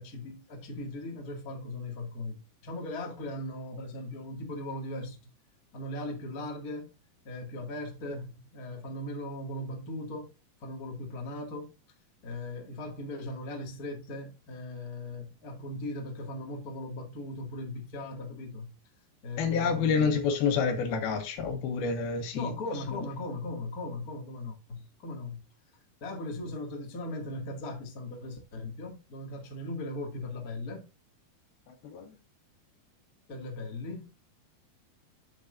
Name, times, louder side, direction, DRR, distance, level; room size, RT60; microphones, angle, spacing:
voice 1, 0.0-5.2 5.7-6.9 7.2-10.3 10.6-11.7 12.2-18.7 19.2-20.2 22.3-25.4 26.0-30.8 33.3-34.1, left 2 dB, 30° left, 1.8 m, -38 dB
voice 2, 19.4-22.5 31.9-32.1, left 5 dB, 75° left, 3.2 m, -28 dB
10.0 x 7.9 x 2.5 m
omnidirectional pair, 4.5 m